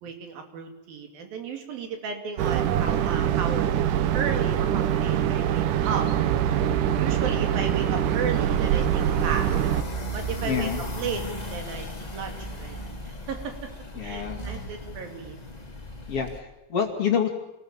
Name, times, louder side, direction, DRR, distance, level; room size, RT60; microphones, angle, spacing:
voice 1, 0.0-3.9 4.1-6.1 7.0-9.5 10.1-10.7 11.0-11.2 11.5-12.9 13.3-13.7 14.0-15.4, right 5 dB, 90° right, 5 dB, 4.5 m, -34 dB
sound 1, 2.4-9.8, right 10 dB, 75° right, 2.4 m, -24 dB
sound 2, 6.0-16.4, right 2 dB, 15° left, 1.9 m, -35 dB
voice 2, 10.4-10.8 13.9-14.4 16.1-17.3, left 7 dB, 45° left, 2 dB, 3.1 m, -27 dB
27.5 x 19.5 x 7.3 m, 0.94 s
omnidirectional pair, 4.0 m